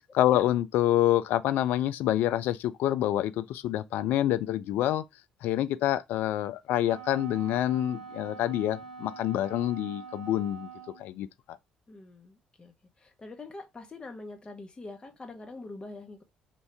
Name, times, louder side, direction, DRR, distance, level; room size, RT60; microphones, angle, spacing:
voice 1, 0.1-5.0 5.4-10.7 11.0-11.6, left 13 dB, 55° left, 0.3 m, -27 dB
Wind instrument woodwind instrument, 6.8-11.1, right 6 dB, 85° right, 1.0 m, -45 dB
voice 2, 11.9-16.2, left 3 dB, 25° left, 1.2 m, -44 dB
4.6 x 2.7 x 3.4 m
figure-of-eight pair, 50°, 4 cm